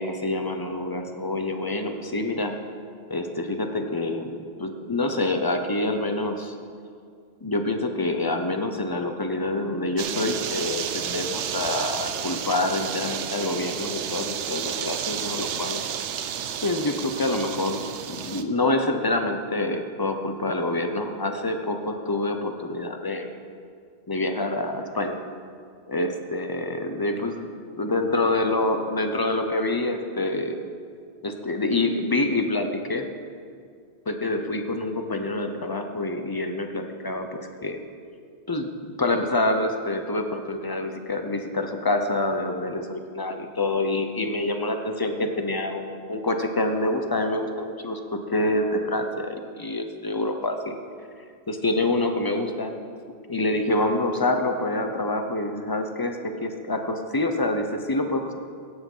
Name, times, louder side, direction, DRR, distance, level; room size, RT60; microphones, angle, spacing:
voice 1, 0.0-2.5 3.1-6.5 7.4-15.8 16.6-23.3 24.1-25.2 25.9-27.5 27.8-30.6 31.2-33.1 34.1-37.8 38.5-38.7 39.0-50.8 51.5-52.7 53.3-58.3, left 2 dB, 25° left, 5 dB, 0.7 m, -26 dB
sound 1, 10.0-18.4, right 8 dB, 90° right, 0.9 m, -31 dB
16.5 x 6.4 x 5.5 m, 2.2 s
omnidirectional pair, 1.2 m